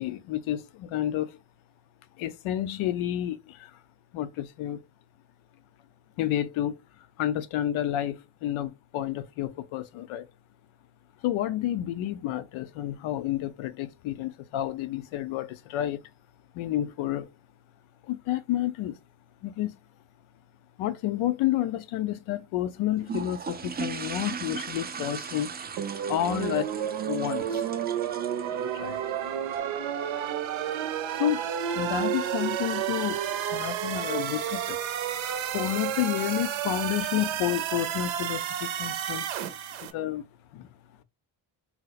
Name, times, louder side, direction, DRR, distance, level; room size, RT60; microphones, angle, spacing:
voice 1, 0.0-1.4 2.2-3.7 4.1-4.8 6.2-6.8 7.2-10.3 11.2-16.0 16.5-17.3 18.1-19.0 19.4-19.8 20.8-25.5 26.1-26.7 27.0-27.6 28.6-29.0 31.2-34.8 35.5-39.2 39.8-40.2 40.5-40.7, left 12 dB, 80° left, 0.6 m, -30 dB
sound 1, 23.0-29.6, right 6 dB, 25° right, 0.3 m, -38 dB
sound 2, 25.8-39.9, right 9 dB, 75° right, 0.6 m, -31 dB
3.0 x 2.0 x 3.9 m
cardioid pair, 70°, 48 cm